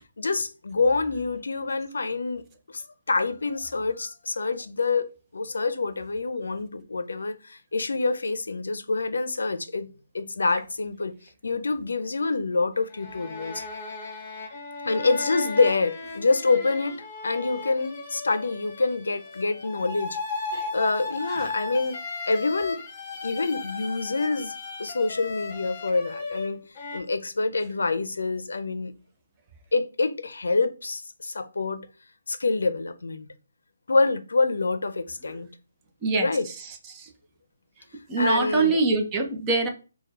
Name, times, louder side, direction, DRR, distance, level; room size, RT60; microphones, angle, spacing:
voice 1, 0.2-2.4 2.7-5.0 5.3-9.9 10.1-11.2 11.4-13.6 14.8-20.2 20.7-22.0 22.3-22.8 23.2-24.5 24.8-26.6 26.9-28.9 29.7-31.8 32.3-33.3 33.9-35.5 36.1-36.5 38.2-38.8, left 3 dB, 80° left, 0.5 m, -26 dB
sound 1, 12.8-27.0, left 3 dB, 35° left, 1.0 m, -36 dB
voice 2, 38.1-39.7, right 3 dB, 20° right, 0.8 m, -24 dB
4.2 x 2.3 x 4.1 m
hypercardioid pair, 155°, 0 cm